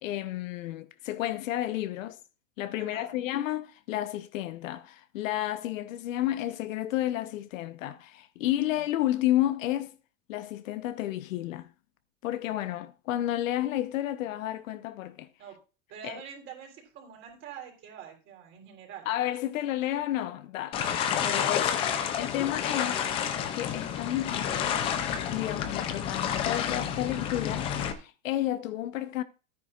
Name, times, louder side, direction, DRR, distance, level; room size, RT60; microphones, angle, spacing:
voice 1, 0.0-2.2 2.6-10.0 10.3-11.7 12.2-15.3 16.0-16.2 19.1-20.8 21.2-21.9 22.1-23.0 23.5-24.6 25.3-27.7 28.0-29.2, left 13 dB, 75° left, 1.0 m, -31 dB
voice 2, 2.8-3.2 15.4-15.6 15.9-19.1 22.0-22.1, right 8 dB, 30° right, 3.7 m, -45 dB
sound 1, 20.7-27.9, left 8 dB, 15° left, 0.4 m, -30 dB
13.0 x 9.7 x 2.4 m
supercardioid pair, 170°, 40 cm